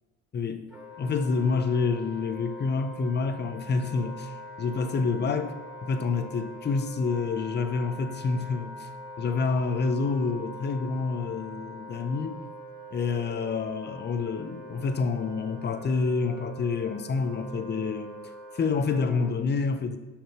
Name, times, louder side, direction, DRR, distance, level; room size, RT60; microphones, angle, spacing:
voice 1, 0.3-0.7 1.0-5.5 5.8-8.9 9.2-12.4 12.9-20.0, left 4 dB, 35° left, 0.7 m, -28 dB
Wind instrument woodwind instrument, 0.7-19.3, equal, 5° right, 1.7 m, -43 dB
6.2 x 4.9 x 4.9 m
cardioid pair, 90°, 30 cm